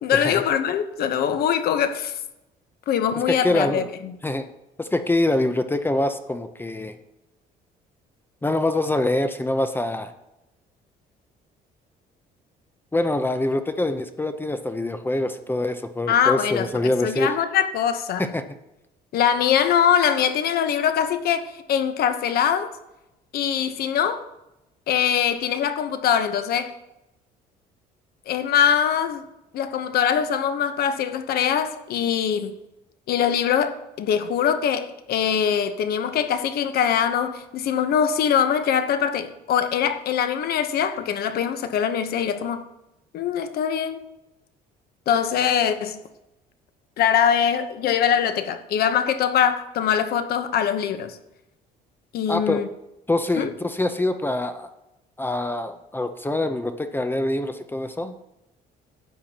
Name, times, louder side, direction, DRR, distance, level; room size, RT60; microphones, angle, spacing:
voice 1, 0.0-2.2 2.9-3.8 16.1-18.3 19.1-22.7 23.3-24.2 24.9-26.7 28.3-29.2 29.5-32.5 33.1-42.6 43.1-44.0 45.1-46.0 47.0-51.2 52.1-52.7 53.4-53.5, left 8 dB, 65° left, 1.0 m, -22 dB
voice 2, 3.2-3.9 4.2-4.5 4.8-7.0 8.4-10.1 12.9-17.3 18.2-18.4 52.3-52.6 53.1-54.7 55.2-58.1, left 2 dB, 10° left, 0.7 m, -25 dB
13.0 x 9.0 x 2.9 m
cardioid pair, 110°, 17 cm